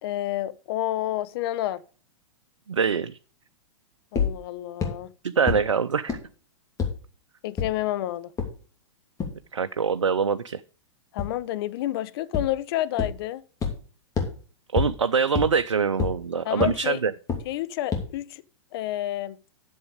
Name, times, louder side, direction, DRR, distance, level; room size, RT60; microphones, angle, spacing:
voice 1, 0.0-1.8 4.1-5.1 7.4-8.3 11.1-13.4 16.4-17.0 17.4-18.4 18.7-19.4, left 14 dB, 55° left, 0.8 m, -29 dB
voice 2, 2.7-3.2 5.2-6.2 9.5-10.6 14.7-17.1, right 6 dB, 85° right, 0.6 m, -24 dB
sound 1, 4.2-4.3 4.8-4.9 5.5-5.6 6.1-6.2 6.8-6.9 7.6-7.7 8.4-8.5 9.2-9.3 11.2-11.3 12.3-12.4 13.0-13.1 13.6-13.7 14.2-14.3 14.8-14.9 15.4-15.5 16.0-16.1 16.6-16.7 17.3-17.4 17.9-18.0, left 6 dB, 20° left, 2.9 m, -24 dB
10.5 x 7.3 x 5.1 m
hypercardioid pair, 105°, 16 cm